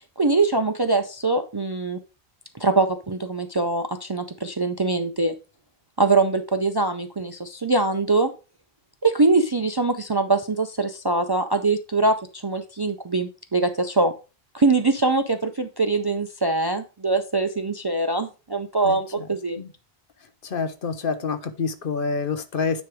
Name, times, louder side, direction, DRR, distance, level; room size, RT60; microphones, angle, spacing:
voice 1, 0.2-2.0 2.5-5.3 6.0-8.3 9.0-14.1 14.5-19.6, right 3 dB, 35° right, 8 dB, 0.4 m, -23 dB
voice 2, 18.8-19.3 19.6-19.7 20.4-22.8, left 5 dB, 60° left, 10 dB, 1.0 m, -27 dB
9.6 x 3.2 x 4.9 m, 0.32 s
omnidirectional pair, 1.0 m